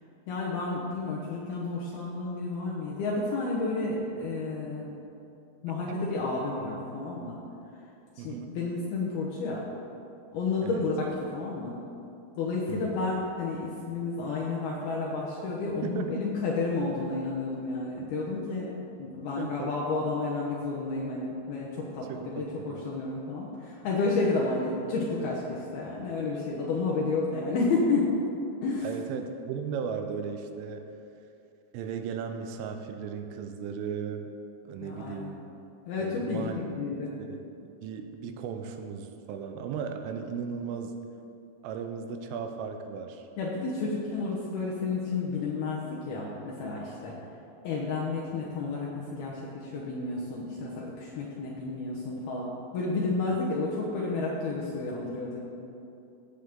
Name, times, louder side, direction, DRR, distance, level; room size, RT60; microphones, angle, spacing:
voice 1, 0.3-5.0 5.6-7.4 8.2-9.6 10.3-11.8 12.4-18.7 19.0-28.1 28.6-28.9 34.8-35.3 35.9-37.1 43.4-47.2 47.6-55.4, left 3 dB, 75° left, -4 dB, 2.4 m, -31 dB
voice 2, 8.2-8.6 10.6-10.8 12.7-13.0 15.8-16.3 19.4-19.7 22.1-22.8 28.8-30.9 31.7-34.3 34.7-35.4 36.0-36.6 36.9-37.0 37.3-41.0 41.6-43.3, right 6 dB, 85° right, 5 dB, 3.3 m, -36 dB
16.5 x 8.2 x 3.6 m, 2.7 s
omnidirectional pair, 5.7 m